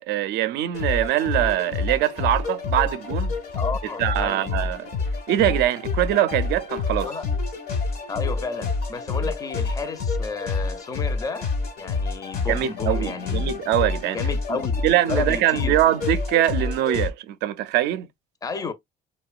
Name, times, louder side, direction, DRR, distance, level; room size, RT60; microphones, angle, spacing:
voice 1, 0.0-3.3 4.0-4.9 5.3-7.1 12.5-14.2 14.8-18.1, right 13 dB, 80° right, 0.4 m, -23 dB
sound 1, 0.7-17.1, left 4 dB, 65° left, 1.2 m, -28 dB
voice 2, 3.5-4.5 7.0-7.3 8.1-11.5 11.8-13.5 14.1-15.8 18.4-18.7, left 4 dB, 20° left, 0.5 m, -32 dB
2.8 x 2.2 x 2.3 m
cardioid pair, 110°, 17 cm